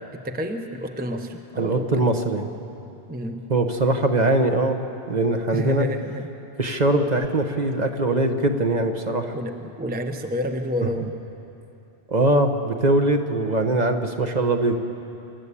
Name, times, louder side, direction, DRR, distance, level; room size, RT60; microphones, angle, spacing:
voice 1, 0.0-2.1 3.1-3.5 5.5-6.3 9.3-11.2, equal, 10° right, 5 dB, 0.7 m, -29 dB
voice 2, 1.6-2.4 3.5-4.8 5.1-5.9 6.6-9.4 12.1-14.7, right 2 dB, 40° right, 5 dB, 1.2 m, -21 dB
27.0 x 12.0 x 8.4 m, 2.9 s
omnidirectional pair, 1.1 m